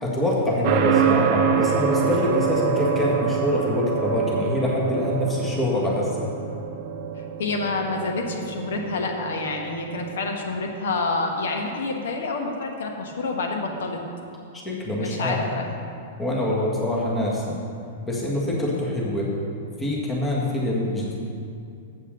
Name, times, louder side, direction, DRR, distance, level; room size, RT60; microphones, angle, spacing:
voice 1, 0.0-6.3 14.5-15.4 16.2-17.6 18.1-19.3 19.8-21.2, left 1 dB, 15° left, -4 dB, 1.8 m, -25 dB
sound 1, 0.6-10.3, right 7 dB, 45° right, 0.7 m, -26 dB
voice 2, 7.4-14.0 15.0-15.7, left 3 dB, 65° left, 2 dB, 1.3 m, -28 dB
7.9 x 6.7 x 6.5 m, 2.5 s
figure-of-eight pair, 100°, 0 cm